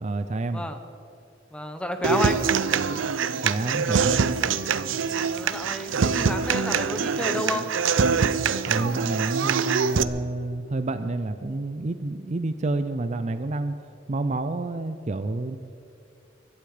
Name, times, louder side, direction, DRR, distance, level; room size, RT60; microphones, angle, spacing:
voice 1, 0.0-0.7 3.4-4.2 8.7-13.7 14.1-15.6, right 2 dB, 35° right, 10 dB, 0.5 m, -29 dB
voice 2, 1.5-2.4 5.1-7.7, equal, 5° left, 7 dB, 1.1 m, -30 dB
Human voice / Acoustic guitar, 2.0-10.0, right 5 dB, 80° right, 0.5 m, -24 dB
24.5 x 12.0 x 5.0 m, 2.5 s
head